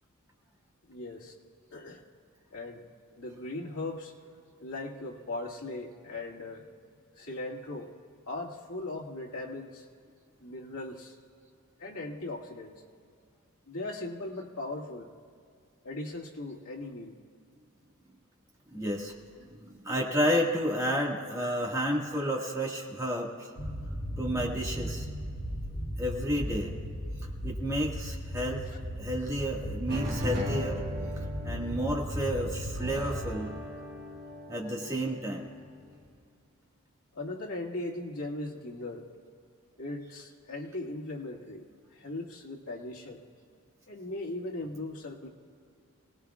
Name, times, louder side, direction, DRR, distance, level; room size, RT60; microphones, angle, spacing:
voice 1, 0.9-1.3 1.7-2.0 2.5-2.9 3.2-4.1 4.6-6.6 7.2-7.9 8.3-9.9 10.4-11.2 11.8-12.7 13.7-15.1 15.8-17.2 21.4-21.6 28.7-28.8 37.1-39.1 39.8-41.6 41.9-43.2 43.9-45.3, left 2 dB, 85° left, -1 dB, 2.1 m, -38 dB
voice 2, 18.7-19.1 19.5-23.5 24.2-25.1 26.0-26.8 27.4-28.6 29.0-30.8 31.4-33.5 34.5-35.5, equal, 15° right, -2 dB, 1.8 m, -31 dB
sound 1, 23.6-33.4, equal, 65° left, 3.4 m, -36 dB
sound 2, 29.9-36.0, left 1 dB, 50° right, 3.3 m, -39 dB
27.0 x 18.5 x 2.4 m, 2.3 s
head